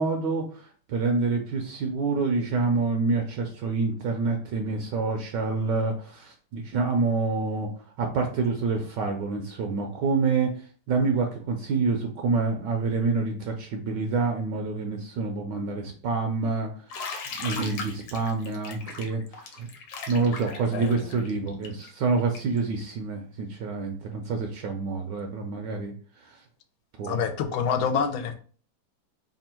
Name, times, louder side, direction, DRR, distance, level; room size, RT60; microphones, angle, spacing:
voice 1, 0.0-7.7 8.0-16.7 17.4-19.7 20.1-25.9 26.2-26.4 27.0-27.2, right 4 dB, 70° right, 3 dB, 1.1 m, -27 dB
Bathtub (filling or washing), 16.9-22.6, left 4 dB, 70° left, 1.4 m, -38 dB
voice 2, 20.7-21.7 27.0-28.3, left 6 dB, 90° left, 7 dB, 1.4 m, -28 dB
3.5 x 2.3 x 4.3 m, 0.42 s
omnidirectional pair, 2.1 m